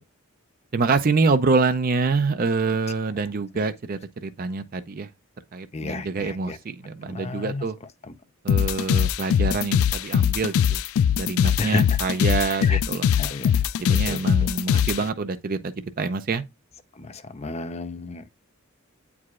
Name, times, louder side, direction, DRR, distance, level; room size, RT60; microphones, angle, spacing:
voice 1, 0.7-5.1 5.5-7.8 8.4-10.8 11.1-13.0 13.8-16.4, right 4 dB, 40° right, 0.5 m, -26 dB
voice 2, 5.7-6.6 7.0-7.7 8.0-8.1 11.6-12.0 12.6-12.8 13.1-15.1 16.9-18.2, left 3 dB, 30° left, 0.6 m, -33 dB
sound 1, 8.5-15.0, left 8 dB, 75° left, 0.3 m, -21 dB
8.4 x 4.7 x 2.4 m
head